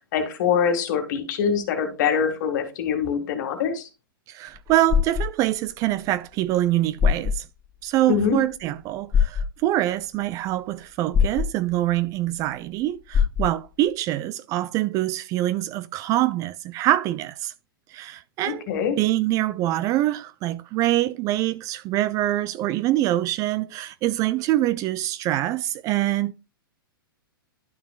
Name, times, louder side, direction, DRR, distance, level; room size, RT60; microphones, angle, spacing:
voice 1, 0.1-3.9 8.1-8.4 18.5-19.0, left 7 dB, 50° left, 2.0 m, -24 dB
voice 2, 4.3-7.5 7.8-17.5 17.9-18.7 19.0-26.3, right 14 dB, 25° right, 0.3 m, -24 dB
sound 1, 4.5-5.3 6.6-6.7 7.0-7.4 9.1-9.5 11.1-11.5 13.1-13.5, left 7 dB, 20° left, 2.7 m, -21 dB
11.5 x 6.0 x 2.4 m
figure-of-eight pair, 110°, 12 cm